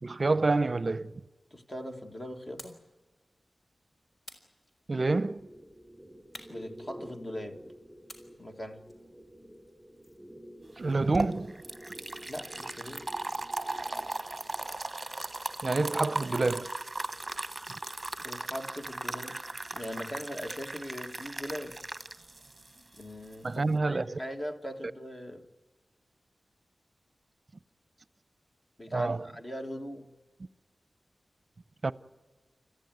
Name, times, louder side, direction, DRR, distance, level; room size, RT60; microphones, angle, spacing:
voice 1, 0.0-1.1 4.9-5.5 10.8-11.6 15.6-16.7 23.4-24.2 28.9-29.3 31.8-31.9, right 3 dB, 45° right, 0.7 m, -28 dB
voice 2, 1.5-2.8 6.5-7.6 8.4-8.9 12.3-13.1 18.2-19.4 19.7-21.8 23.0-25.5 28.8-30.1, equal, 25° left, 1.7 m, -40 dB
sound 1, 2.6-2.9 4.2-5.2 6.3-7.4 8.1-10.3, left 1 dB, 50° left, 3.9 m, -52 dB
sound 2, 4.9-14.8, equal, ahead, 4.6 m, -50 dB
sound 3, 10.8-23.7, right 2 dB, 20° right, 1.2 m, -37 dB
28.5 x 14.5 x 9.2 m
wide cardioid pair, 95°, 0 cm